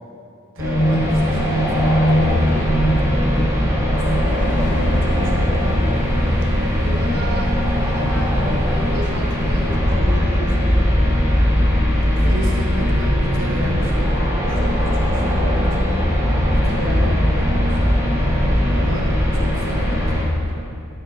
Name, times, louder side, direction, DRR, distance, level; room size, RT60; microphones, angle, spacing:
voice 1, 0.5-5.8 12.2-14.1 14.4-15.9 16.5-17.9 18.7-20.5, right 1 dB, 65° right, -1 dB, 1.0 m, -32 dB
sound 1, 0.6-20.2, equal, 15° right, 1.5 m, -18 dB
sound 2, 4.3-9.7, equal, 35° left, 1.3 m, -35 dB
voice 2, 6.8-10.9 12.0-12.4, right 1 dB, 80° right, 0 dB, 1.0 m, -33 dB
13.5 x 5.2 x 4.0 m, 2.6 s
head